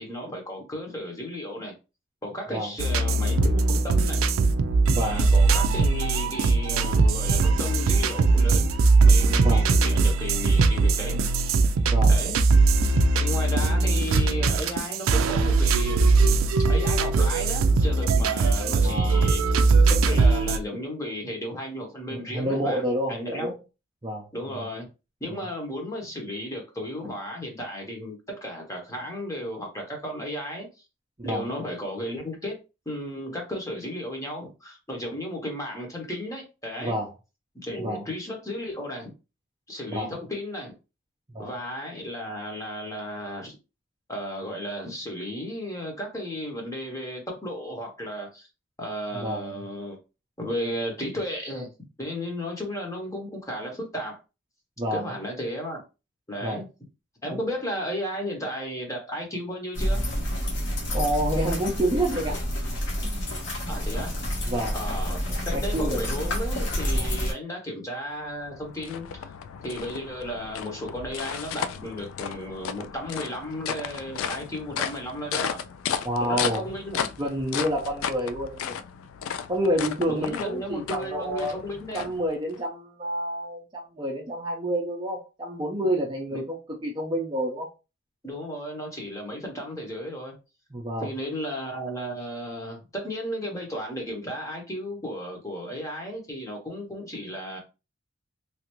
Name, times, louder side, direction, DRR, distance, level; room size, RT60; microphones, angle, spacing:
voice 1, 0.0-1.7 2.2-4.3 5.0-8.7 9.0-11.4 12.1-12.4 13.1-16.4 16.7-19.6 20.0-22.8 23.1-23.5 24.3-24.9 25.2-30.7 31.2-37.0 37.5-39.1 39.7-40.7 41.4-43.6 44.1-48.5 48.8-50.0 50.4-51.7 52.0-54.2 54.9-55.8 56.3-56.7 57.2-60.1 63.7-64.2 64.7-69.3 69.6-75.6 76.2-77.1 80.1-82.1 86.3-86.4 88.2-90.3 91.0-97.6, equal, 15° left, 1 dB, 0.9 m, -34 dB
sound 1, 2.8-20.6, right 3 dB, 85° right, 0.4 m, -20 dB
voice 2, 4.9-5.2 9.4-9.7 11.9-12.2 18.8-19.3 22.1-23.5 24.0-24.7 25.3-25.4 31.2-31.5 36.8-37.1 37.8-38.0 39.9-40.1 41.3-41.5 49.2-49.6 54.8-55.1 56.4-56.6 57.3-57.4 60.9-62.4 63.0-63.3 63.6-63.8 64.5-64.8 65.3-66.0 66.9-67.1 76.0-76.7 77.2-78.8 79.5-81.6 81.9-87.7 90.7-91.1, equal, 20° right, -1 dB, 0.5 m, -29 dB
sound 2, 59.7-67.3, equal, 60° left, 1.1 m, -28 dB
sound 3, 68.1-82.6, left 8 dB, 85° left, 0.3 m, -34 dB
3.2 x 2.5 x 3.0 m, 0.28 s
head